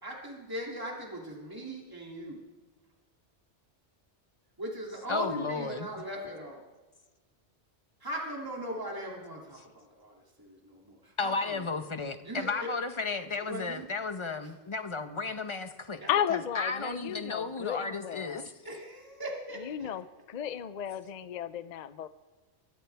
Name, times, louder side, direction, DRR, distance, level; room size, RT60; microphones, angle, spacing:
voice 1, 0.0-2.4 4.6-6.7 8.0-11.9 12.2-12.7 13.4-13.9 14.4-14.5 16.0-16.2 18.6-19.9, right 1 dB, 20° right, -2 dB, 2.8 m, -39 dB
voice 2, 5.1-5.9 11.2-16.0 16.3-18.5, left 4 dB, 25° left, 8 dB, 0.9 m, -34 dB
voice 3, 16.1-18.5 19.6-22.1, left 9 dB, 45° left, 13 dB, 0.6 m, -34 dB
22.5 x 16.5 x 3.5 m, 1.2 s
omnidirectional pair, 1.2 m